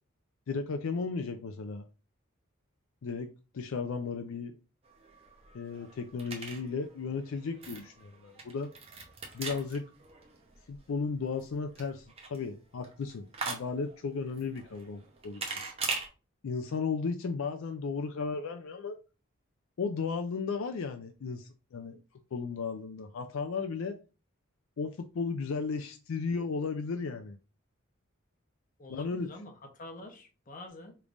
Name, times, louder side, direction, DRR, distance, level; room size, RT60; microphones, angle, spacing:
voice 1, 0.5-1.8 3.0-3.3 3.5-4.5 5.5-8.7 9.3-9.8 10.7-12.0 12.3-15.6 16.4-19.0 19.8-22.0 22.3-24.0 24.8-27.4 28.9-29.3, left 4 dB, 75° left, 0.4 m, -35 dB
sound 1, 4.8-16.1, right 4 dB, 30° right, 0.8 m, -42 dB
voice 2, 28.8-31.0, left 2 dB, 40° left, 0.8 m, -46 dB
5.0 x 3.3 x 2.5 m
head